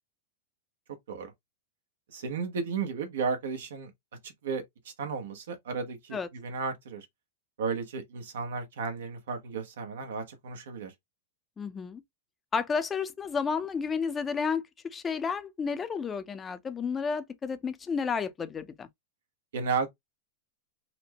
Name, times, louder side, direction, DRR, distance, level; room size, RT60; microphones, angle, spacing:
voice 1, 2.1-3.9 4.2-7.1 7.6-10.9 19.5-19.9, right 5 dB, 80° right, 1.0 m, -34 dB
voice 2, 11.6-12.0 12.5-18.9, left 5 dB, 20° left, 0.5 m, -31 dB
4.3 x 2.1 x 2.9 m
hypercardioid pair, 135°, 0 cm